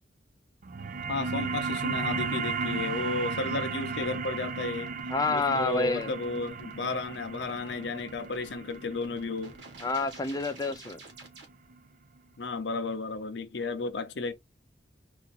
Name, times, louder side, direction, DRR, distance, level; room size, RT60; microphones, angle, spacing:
sound 1, 0.6-11.7, right 4 dB, 50° right, 0.6 m, -35 dB
sound 2, 0.8-11.5, right 3 dB, 75° right, 1.5 m, -52 dB
voice 1, 1.1-4.9 5.3-9.6 12.4-14.3, left 3 dB, 75° left, 0.7 m, -33 dB
voice 2, 5.1-6.1 9.8-11.0, left 3 dB, 20° left, 0.6 m, -28 dB
4.1 x 2.6 x 4.1 m
head